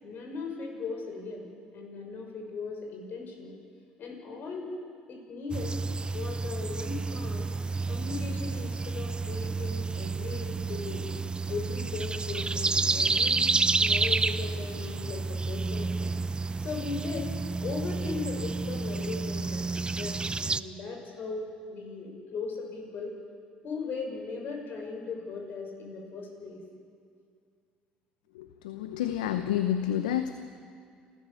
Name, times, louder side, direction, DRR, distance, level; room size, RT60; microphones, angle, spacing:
voice 1, 0.0-1.5 1.7-3.6 4.0-4.7 5.1-5.8 6.1-7.5 7.9-11.0 11.5-16.1 16.6-17.3 17.6-23.1 23.6-26.6, left 4 dB, 55° left, 1 dB, 6.4 m, -38 dB
sound 1, 5.5-20.6, right 3 dB, 25° right, 0.7 m, -30 dB
voice 2, 28.3-30.3, left 10 dB, 90° left, 9 dB, 0.8 m, -29 dB
29.0 x 14.0 x 7.2 m, 2.3 s
hypercardioid pair, 60°, 4 cm